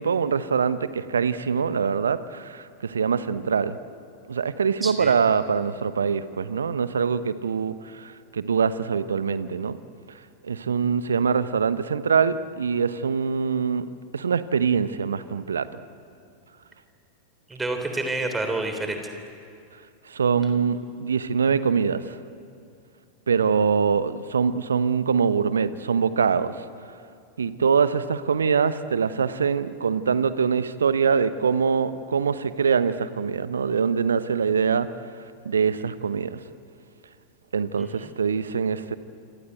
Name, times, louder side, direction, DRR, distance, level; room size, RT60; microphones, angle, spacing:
voice 1, 0.0-3.8 4.3-9.8 10.4-13.8 14.1-15.7 20.1-22.2 23.3-26.6 27.4-34.9 35.4-36.4 37.5-39.0, right 6 dB, 70° right, 14 dB, 1.0 m, -24 dB
voice 2, 4.8-5.1 17.5-19.0 37.8-38.1, right 2 dB, 10° right, 5 dB, 3.5 m, -29 dB
27.0 x 26.0 x 8.0 m, 2.5 s
figure-of-eight pair, 90°, 0 cm